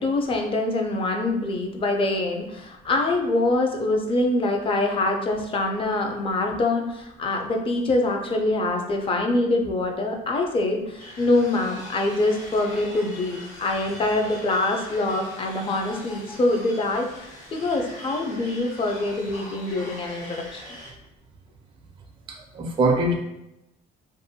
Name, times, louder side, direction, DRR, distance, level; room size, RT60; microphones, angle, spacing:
voice 1, 0.0-20.6, left 2 dB, 30° left, 2 dB, 0.5 m, -24 dB
sound 1, 11.0-20.9, equal, 50° left, 1.4 m, -42 dB
voice 2, 22.3-23.1, right 2 dB, 30° right, 1 dB, 0.4 m, -23 dB
2.6 x 2.1 x 2.7 m, 0.88 s
cardioid pair, 110°, 17 cm